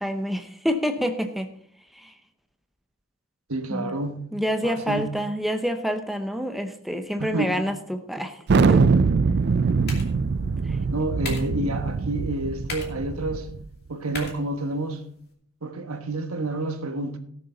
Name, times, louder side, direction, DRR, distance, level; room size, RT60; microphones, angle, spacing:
voice 1, 0.0-1.5 2.0-2.1 3.7-3.9 4.3-8.9, equal, ahead, 0.7 m, -27 dB
voice 2, 3.5-4.3 4.6-5.1 7.2-7.7 10.7-13.5 13.9-15.1 15.6-17.2, right 2 dB, 80° right, 1.3 m, -29 dB
Thunder, 8.5-13.7, right 4 dB, 50° right, 0.4 m, -22 dB
sound 1, 9.3-15.3, left 3 dB, 45° left, 2.5 m, -42 dB
17.5 x 6.8 x 3.9 m
head